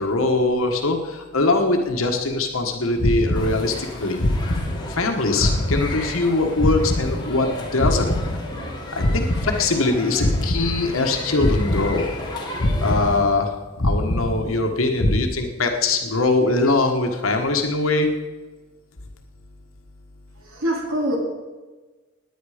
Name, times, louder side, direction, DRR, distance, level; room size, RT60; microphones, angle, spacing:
voice 1, 0.0-4.2 4.9-8.1 8.9-12.1 12.8-13.5 13.8-18.1, left 3 dB, 80° left, 3 dB, 1.4 m, -22 dB
sound 1, 3.0-3.9 4.2-5.1 5.4-7.5 7.8-9.9 10.2-11.1 11.4-12.3 12.6-13.5 13.8-14.7 15.0-15.2, left 1 dB, 65° left, 1.5 m, -24 dB
sound 2, 3.3-13.2, left 1 dB, 20° left, 2.6 m, -34 dB
voice 2, 20.4-21.2, equal, 80° right, -1 dB, 2.5 m, -24 dB
19.0 x 9.6 x 5.0 m, 1.2 s
head